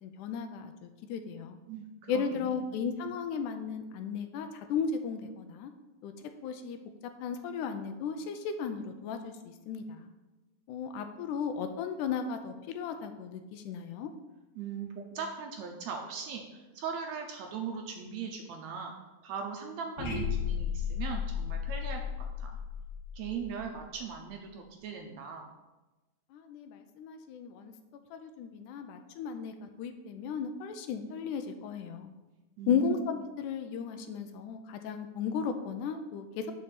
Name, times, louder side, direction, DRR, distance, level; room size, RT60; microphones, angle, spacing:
voice 1, 0.0-1.6 2.1-5.7 6.0-6.1 6.4-6.8 7.2-10.1 10.7-14.1 26.3-27.7 28.1-32.1 32.7-36.5, left 6 dB, 80° left, 7 dB, 2.0 m, -35 dB
voice 2, 1.7-2.6 14.6-18.9 19.2-22.0 22.4-22.5 23.1-25.5 32.6-32.9, right 6 dB, 75° right, 3 dB, 1.8 m, -39 dB
sound 1, 20.0-24.1, left 7 dB, 60° left, 2.1 m, -34 dB
5.8 x 5.3 x 6.7 m, 1.1 s
omnidirectional pair, 3.7 m